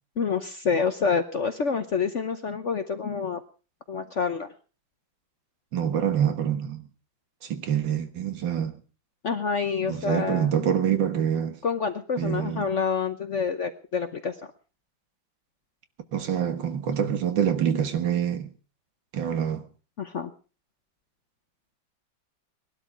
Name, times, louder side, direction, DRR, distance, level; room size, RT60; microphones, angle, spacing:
voice 1, 0.2-3.4 3.9-4.5 9.2-10.5 11.6-14.4 20.0-20.3, left 5 dB, 50° left, 0.9 m, -27 dB
voice 2, 5.7-6.8 7.4-8.8 9.8-11.6 12.2-12.7 16.1-18.5 19.1-19.6, right 9 dB, 70° right, 2.0 m, -26 dB
19.0 x 12.0 x 4.9 m
omnidirectional pair, 2.1 m